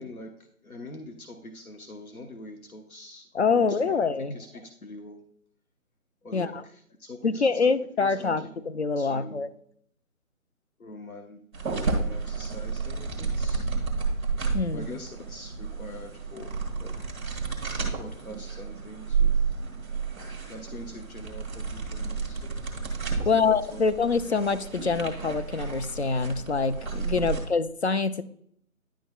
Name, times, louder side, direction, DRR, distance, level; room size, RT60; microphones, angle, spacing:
voice 1, 0.0-4.0 4.3-5.2 6.2-8.5 9.0-9.6 10.8-11.4 11.8-13.7 14.7-17.2 17.9-19.7 20.4-22.4 23.2-23.8, left 1 dB, 80° left, 4 dB, 1.0 m, -44 dB
voice 2, 3.3-4.4 6.3-6.6 7.2-9.5 14.5-14.9 23.3-28.2, left 4 dB, 50° left, 11 dB, 0.5 m, -25 dB
sound 1, 11.5-27.4, right 5 dB, 10° right, 1.2 m, -31 dB
10.0 x 5.9 x 2.3 m, 0.65 s
figure-of-eight pair, 150°, 43 cm